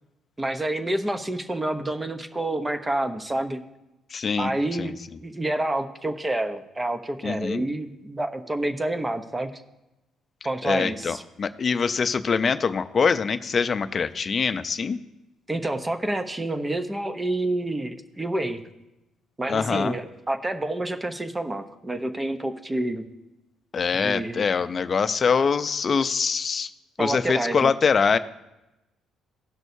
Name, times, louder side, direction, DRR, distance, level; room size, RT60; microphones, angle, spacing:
voice 1, 0.4-3.6 4.4-9.6 10.4-11.2 15.5-18.6 19.4-23.0 23.9-24.4 27.0-27.7, right 1 dB, 15° right, 8 dB, 0.8 m, -28 dB
voice 2, 4.1-4.5 4.8-4.9 7.2-7.6 10.6-15.0 19.5-20.0 23.7-26.7 27.0-28.2, left 5 dB, 40° left, 12 dB, 0.5 m, -24 dB
17.5 x 6.1 x 2.7 m, 0.96 s
cardioid pair, 100°, 0 cm